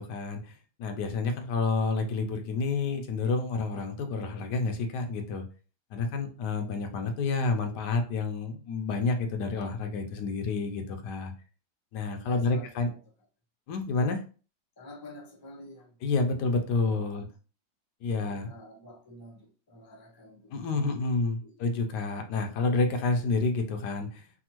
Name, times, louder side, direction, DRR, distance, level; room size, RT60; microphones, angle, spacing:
voice 1, 0.0-5.4 5.9-11.3 11.9-12.9 13.7-14.2 16.0-17.3 18.0-18.5 20.5-24.2, left 3 dB, 85° left, 1.2 m, -29 dB
voice 2, 12.2-13.0 14.8-16.0 16.8-17.3 18.0-21.0 21.4-21.6, left 1 dB, 30° left, 0.3 m, -49 dB
3.4 x 2.1 x 2.8 m
omnidirectional pair, 1.8 m